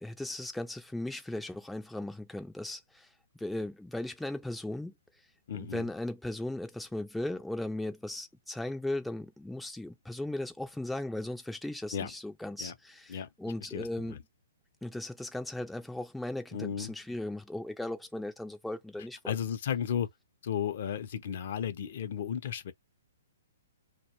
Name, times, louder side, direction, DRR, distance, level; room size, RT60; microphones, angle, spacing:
voice 1, 0.0-3.1 3.4-4.9 5.5-14.2 14.8-19.4, left 1 dB, 5° left, 0.3 m, -37 dB
voice 2, 5.5-5.9 11.9-12.1 12.6-12.7 13.1-13.3 13.7-14.2 16.5-16.9 19.3-20.1 20.4-22.7, left 8 dB, 55° left, 0.5 m, -34 dB
2.4 x 2.1 x 2.9 m
hypercardioid pair, 150°, 0 cm